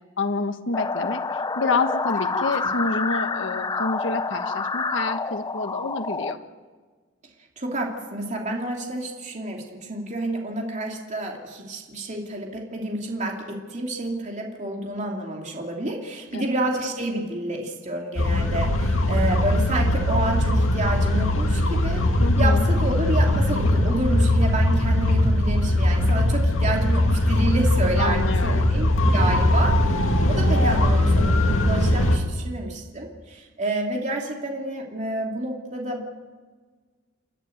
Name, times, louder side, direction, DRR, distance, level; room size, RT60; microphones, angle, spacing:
voice 1, 0.2-6.4 16.3-16.4 22.2-22.7 28.0-28.7, left 3 dB, 65° left, 7 dB, 1.4 m, -28 dB
sound 1, 0.7-6.3, left 4 dB, 20° left, 0.5 m, -28 dB
voice 2, 7.6-22.0 22.4-36.1, right 1 dB, 35° right, 0 dB, 3.0 m, -29 dB
sound 2, 18.2-32.2, left 1 dB, 80° left, 2.2 m, -20 dB
29.5 x 11.0 x 9.3 m, 1.5 s
head